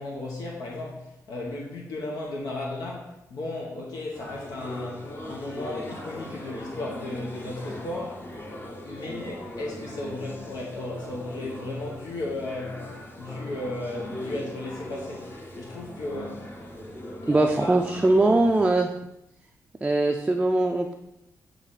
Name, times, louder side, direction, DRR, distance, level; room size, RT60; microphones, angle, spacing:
voice 1, 0.0-8.3 8.8-12.9 13.2-16.5 17.2-17.8, left 2 dB, 90° left, -2 dB, 1.0 m, -35 dB
sound 1, 4.1-18.7, left 1 dB, 35° left, 0.9 m, -39 dB
voice 2, 17.3-18.9 19.8-21.0, right 2 dB, 15° right, 3 dB, 0.4 m, -21 dB
7.9 x 3.2 x 4.0 m, 0.86 s
wide cardioid pair, 120°, 6 cm